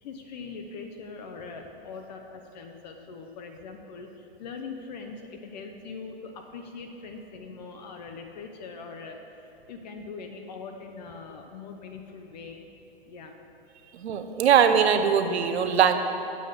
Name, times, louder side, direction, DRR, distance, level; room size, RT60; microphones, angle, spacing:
voice 1, 0.0-12.6 13.0-13.4, left 4 dB, 45° left, 4 dB, 0.7 m, -42 dB
voice 2, 13.9-15.9, right 7 dB, 90° right, 8 dB, 0.8 m, -21 dB
7.7 x 5.1 x 7.3 m, 3.0 s
hypercardioid pair, 155°, 32 cm